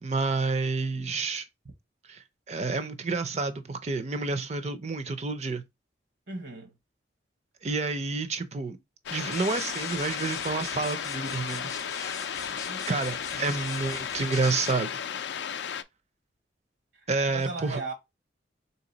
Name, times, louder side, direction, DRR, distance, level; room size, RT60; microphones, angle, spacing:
voice 1, 0.0-1.5 2.1-5.6 7.6-8.8 9.1-11.7 12.9-14.9 17.1-17.8, right 3 dB, 35° right, 0.5 m, -29 dB
voice 2, 6.3-6.7 12.7-13.0 13.3-13.4 16.9-17.9, right 3 dB, 70° right, 1.0 m, -38 dB
sound 1, 9.1-15.8, left 8 dB, 70° left, 0.4 m, -34 dB
sound 2, 9.3-14.7, left 4 dB, 20° left, 0.5 m, -41 dB
3.7 x 2.9 x 3.9 m
head